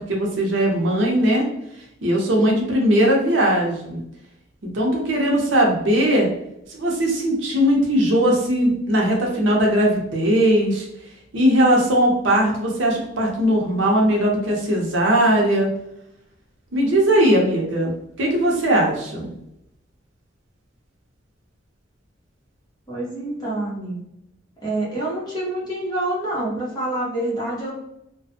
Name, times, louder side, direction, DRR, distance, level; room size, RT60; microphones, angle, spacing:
voice 1, 0.0-1.5 2.0-4.0 4.6-6.3 6.7-10.9 11.3-15.7 16.7-17.9 18.2-19.3, right 1 dB, 70° right, -1 dB, 0.7 m, -19 dB
voice 2, 22.9-24.0 24.6-27.7, right 1 dB, 20° left, -6 dB, 1.0 m, -27 dB
2.4 x 2.2 x 2.7 m, 0.80 s
head